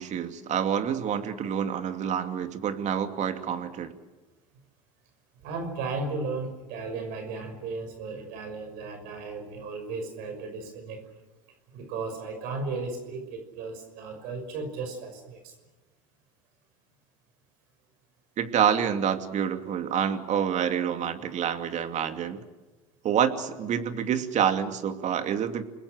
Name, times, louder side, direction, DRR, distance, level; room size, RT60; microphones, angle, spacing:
voice 1, 0.0-4.0 18.4-22.4 23.0-25.6, right 8 dB, 45° right, 8 dB, 2.6 m, -27 dB
voice 2, 5.4-11.0 11.7-15.5, right 3 dB, 65° right, 5 dB, 5.9 m, -35 dB
29.0 x 21.0 x 6.5 m, 1.2 s
hypercardioid pair, 95°, 17 cm